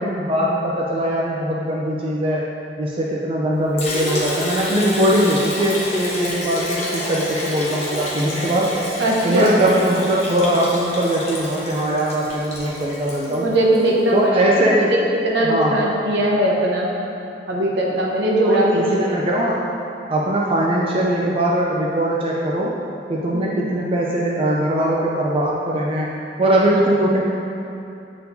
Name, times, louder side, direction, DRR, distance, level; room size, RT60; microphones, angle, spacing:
voice 1, 0.0-2.5 2.8-8.9 9.2-13.5 14.1-14.9 15.4-15.8 18.4-19.7 20.1-22.7 23.1-26.1 26.4-27.2, right 1 dB, 30° right, -4 dB, 0.4 m, -21 dB
Liquid, 3.8-13.9, left 1 dB, 35° left, 1.0 m, -29 dB
voice 2, 9.0-9.6 13.3-16.9 17.5-19.1 23.3-23.5, right 1 dB, 65° right, -3 dB, 0.9 m, -20 dB
8.4 x 4.4 x 2.7 m, 2.7 s
head